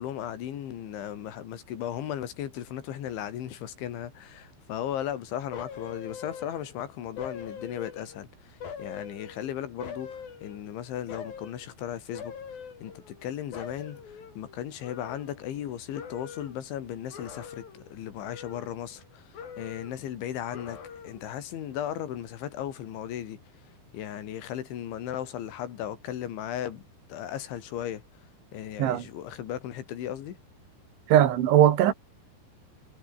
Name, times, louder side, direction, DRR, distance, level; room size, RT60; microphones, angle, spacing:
voice 1, 0.0-12.3 12.8-20.8 21.0-23.4 23.9-26.8 27.1-28.0 28.5-30.4, left 10 dB, 85° left, 4.8 m, -36 dB
sound 1, 5.5-6.8 7.2-8.2 8.6-10.7 11.1-11.7 12.1-13.3 13.5-15.7 15.9-16.6 17.1-17.9 18.2-19.1 19.3-20.1 20.5-21.3 21.7-21.8, left 7 dB, 55° left, 5.3 m, -43 dB
voice 2, 31.1-31.9, right 11 dB, 85° right, 4.5 m, -20 dB
omnidirectional pair, 5.3 m